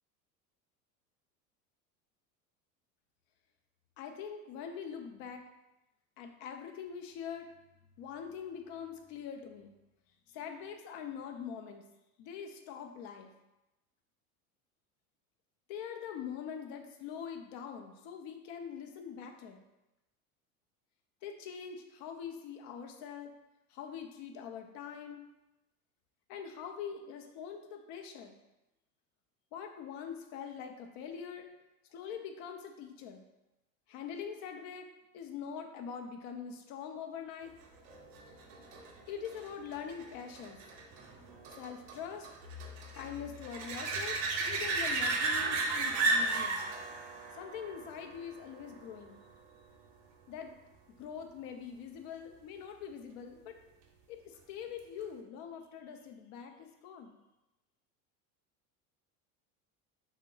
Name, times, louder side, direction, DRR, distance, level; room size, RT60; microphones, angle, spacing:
voice 1, 4.0-5.5 6.2-7.5 8.0-9.7 10.3-11.8 12.2-13.3 15.7-19.6 21.2-23.3 23.7-25.2 26.3-28.3 29.5-31.5 31.9-33.3 33.9-34.9 35.1-37.5 39.1-40.6 41.6-42.3 42.9-46.6 47.3-49.2 50.3-50.5 51.0-53.6 54.1-57.1, left 7 dB, 50° left, 5 dB, 0.6 m, -43 dB
sound 1, 37.9-49.2 54.8-54.9, right 3 dB, 55° right, 0.6 m, -35 dB
2.8 x 2.1 x 3.8 m, 0.97 s
hypercardioid pair, 80°, 45 cm